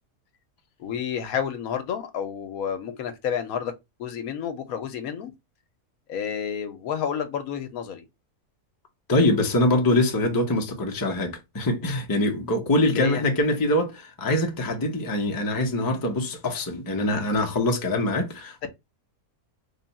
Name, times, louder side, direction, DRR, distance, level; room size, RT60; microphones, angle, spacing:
voice 1, 0.8-3.7 4.0-5.3 6.1-8.0 12.8-13.2 18.6-18.7, left 8 dB, 75° left, 1.1 m, -30 dB
voice 2, 9.1-18.7, left 1 dB, 20° left, 0.5 m, -24 dB
3.7 x 2.3 x 3.9 m
omnidirectional pair, 1.6 m